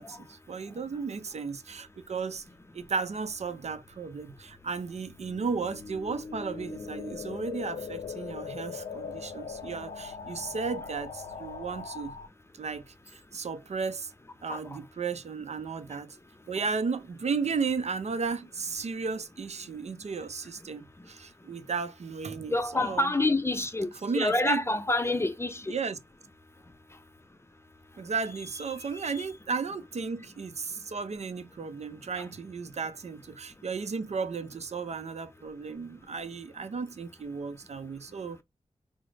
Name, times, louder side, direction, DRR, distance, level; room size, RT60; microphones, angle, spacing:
voice 1, 0.0-2.4 2.7-12.1 12.5-14.1 14.4-16.2 16.5-23.1 24.0-24.6 25.7-26.0 28.0-38.4, right 5 dB, 60° right, 0.5 m, -34 dB
sound 1, 3.0-12.3, left 5 dB, 80° left, 0.6 m, -41 dB
voice 2, 22.5-25.7 28.8-29.3 32.2-32.3, left 2 dB, 20° left, 0.5 m, -28 dB
4.9 x 2.0 x 3.2 m
wide cardioid pair, 95°, 13 cm